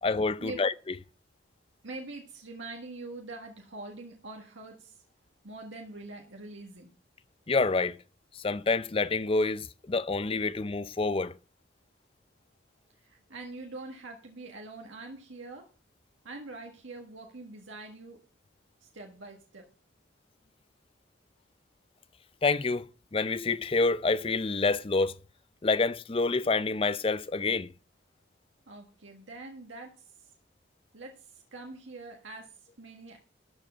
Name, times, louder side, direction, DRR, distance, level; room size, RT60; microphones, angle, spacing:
voice 1, 0.0-0.7 7.5-8.0 8.3-11.3 22.4-25.2 25.6-27.7, left 3 dB, 30° left, 0.4 m, -27 dB
voice 2, 1.8-5.0 5.4-6.9 13.0-15.7 16.2-18.2 18.8-19.7 28.7-30.3 30.9-33.2, right 2 dB, 80° right, 1.7 m, -44 dB
13.5 x 4.8 x 7.8 m
head